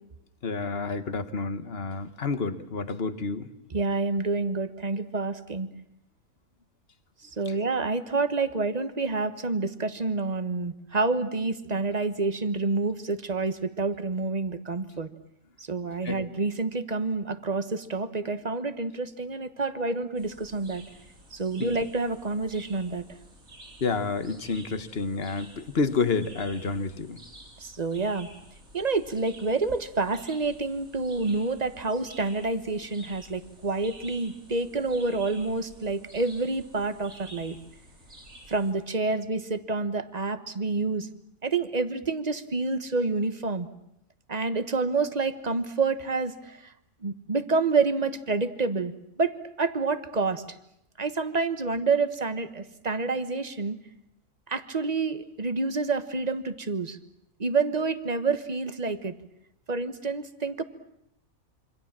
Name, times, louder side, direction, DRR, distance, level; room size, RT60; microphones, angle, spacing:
voice 1, 0.4-3.5 16.0-16.2 21.6-21.8 23.8-27.2, left 4 dB, 45° left, 11 dB, 1.5 m, -29 dB
voice 2, 3.7-5.7 7.2-15.1 15.6-20.8 21.3-23.0 27.6-28.3 28.7-37.6 38.5-41.1 41.4-43.7 44.3-46.7 47.0-50.6 51.0-53.8 54.5-57.0 57.4-59.1 59.7-60.6, right 3 dB, 30° right, 11 dB, 1.3 m, -28 dB
sound 1, 20.1-38.7, right 1 dB, 75° right, 8.3 m, -50 dB
27.0 x 25.0 x 7.5 m, 0.78 s
omnidirectional pair, 1.5 m